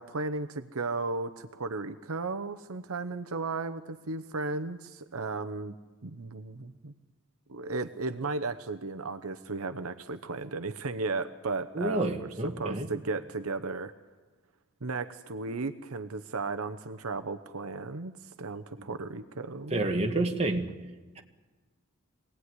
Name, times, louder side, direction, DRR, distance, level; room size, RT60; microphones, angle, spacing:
voice 1, 0.0-5.8 6.0-6.9 7.5-12.3 12.6-13.9 14.8-18.1 18.4-19.8, right 3 dB, 75° right, 9 dB, 0.9 m, -35 dB
voice 2, 11.7-12.9 19.7-20.7, right 2 dB, 30° right, 3 dB, 2.0 m, -29 dB
25.0 x 18.0 x 9.8 m, 1.3 s
head